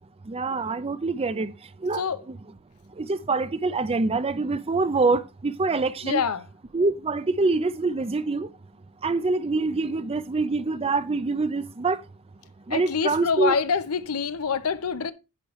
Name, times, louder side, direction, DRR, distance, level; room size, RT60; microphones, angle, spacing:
voice 1, 0.3-1.5 1.8-2.4 3.0-6.2 6.7-8.5 9.0-12.0 12.7-13.6, right 3 dB, 25° right, 0.5 m, -25 dB
voice 2, 6.0-6.4 12.7-15.1, left 6 dB, 75° left, 0.7 m, -26 dB
9.8 x 6.4 x 3.0 m
head